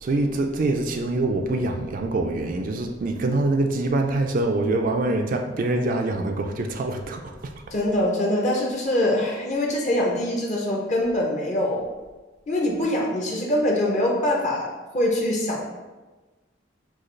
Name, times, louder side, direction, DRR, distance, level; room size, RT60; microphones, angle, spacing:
voice 1, 0.0-7.5, right 2 dB, 45° right, 0.4 m, -25 dB
voice 2, 7.7-11.9 12.5-15.6, left 1 dB, 40° left, 0.7 m, -24 dB
6.2 x 2.4 x 3.2 m
head